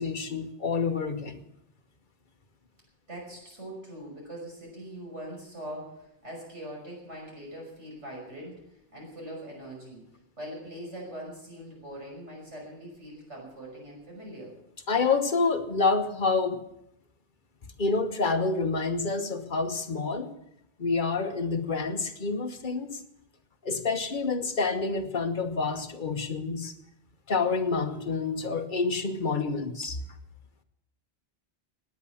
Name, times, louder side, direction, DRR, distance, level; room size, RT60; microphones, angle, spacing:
voice 1, 0.0-1.4 14.9-16.6 17.8-20.3 20.8-23.0 23.6-26.7 27.3-30.0, left 4 dB, 45° left, 6 dB, 1.4 m, -28 dB
voice 2, 3.1-10.1 10.4-14.5, right 1 dB, 90° right, -2 dB, 6.3 m, -42 dB
17.5 x 9.6 x 7.2 m, 0.80 s
omnidirectional pair, 1.2 m